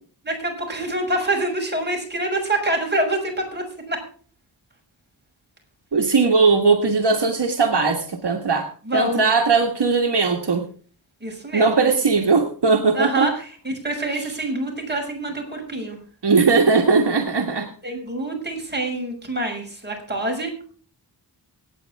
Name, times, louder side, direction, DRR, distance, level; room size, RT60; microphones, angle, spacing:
voice 1, 0.2-4.0 8.8-9.2 11.2-11.9 12.9-16.0 17.8-20.6, right 1 dB, 25° right, 1 dB, 6.4 m, -26 dB
voice 2, 5.9-10.6 11.5-13.3 16.2-17.7, right 4 dB, 65° right, 3 dB, 1.7 m, -19 dB
23.5 x 9.7 x 3.5 m, 0.42 s
wide cardioid pair, 80°, 44 cm